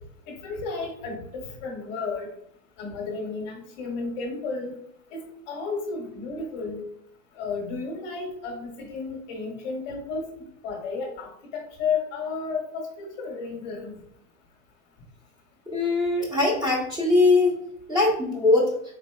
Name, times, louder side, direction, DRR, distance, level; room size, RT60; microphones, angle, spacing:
voice 1, 0.3-2.3 2.8-4.7 5.1-5.2 5.5-6.8 7.3-10.3 10.6-14.0, left 4 dB, 35° left, 2 dB, 0.8 m, -32 dB
voice 2, 15.7-17.6 17.9-18.8, left 3 dB, 10° right, -2 dB, 0.7 m, -21 dB
3.9 x 3.9 x 2.2 m, 0.72 s
supercardioid pair, 160°, 38 cm